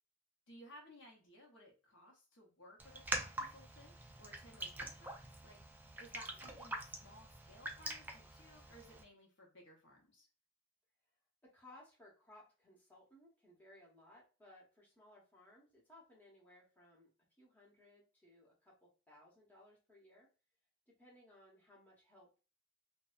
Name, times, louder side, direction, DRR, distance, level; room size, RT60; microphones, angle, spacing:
voice 1, 0.5-5.1 5.4-5.6 5.9-10.3, equal, 60° left, 0 dB, 0.8 m, -59 dB
Raindrop, 2.8-9.0, right 1 dB, 10° right, 0.3 m, -45 dB
voice 2, 11.4-17.1 17.4-20.3 20.9-22.4, left 1 dB, 10° left, -4 dB, 0.9 m, -62 dB
2.6 x 2.1 x 2.4 m, 0.33 s
head